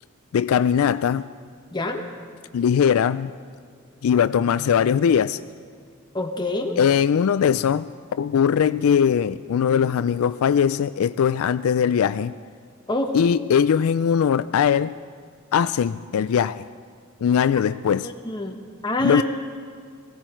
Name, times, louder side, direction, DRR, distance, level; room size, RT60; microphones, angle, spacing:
voice 1, 0.3-1.3 2.5-3.3 4.0-5.4 6.8-12.3 13.1-14.9 15.5-16.7 17.2-18.1 19.0-19.2, left 7 dB, 80° left, 14 dB, 0.3 m, -20 dB
voice 2, 1.7-2.1 6.1-6.8 12.9-13.1 18.0-19.2, left 1 dB, 20° left, 3 dB, 1.3 m, -26 dB
19.5 x 16.5 x 4.5 m, 2.1 s
head